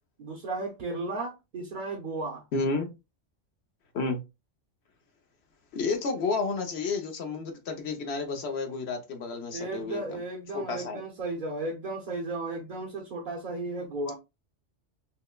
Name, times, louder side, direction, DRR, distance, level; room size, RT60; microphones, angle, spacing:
voice 1, 0.2-2.4 9.5-14.1, right 2 dB, 50° right, 0.8 m, -34 dB
voice 2, 2.5-2.9 3.9-4.2 5.7-10.2 10.5-11.0, left 4 dB, 65° left, 1.0 m, -31 dB
5.5 x 2.1 x 2.2 m
omnidirectional pair, 1.2 m